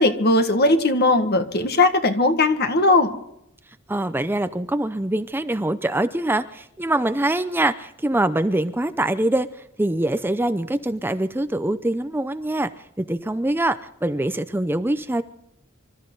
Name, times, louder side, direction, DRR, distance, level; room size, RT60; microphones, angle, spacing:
voice 1, 0.0-3.1, left 2 dB, 50° left, 7 dB, 1.7 m, -18 dB
voice 2, 3.9-9.5 9.8-12.7 13.0-15.2, right 1 dB, 10° right, 11 dB, 0.6 m, -24 dB
26.0 x 13.5 x 3.9 m, 0.77 s
head